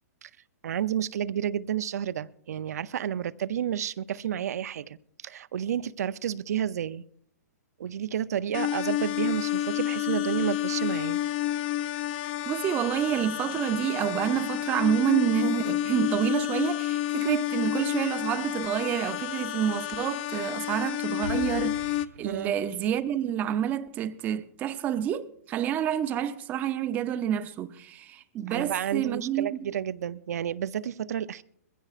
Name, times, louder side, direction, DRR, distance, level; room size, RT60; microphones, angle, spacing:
voice 1, 0.6-5.0 5.2-7.0 7.8-11.2 22.2-22.6 28.5-31.4, right 9 dB, 65° right, 0.6 m, -31 dB
sound 1, 8.5-22.0, left 13 dB, 35° left, 0.5 m, -30 dB
voice 2, 12.5-29.7, right 10 dB, 20° right, 0.6 m, -28 dB
Explosion, 21.2-25.0, right 5 dB, 90° right, 1.1 m, -44 dB
22.0 x 15.5 x 2.5 m
hypercardioid pair, 160°, 9 cm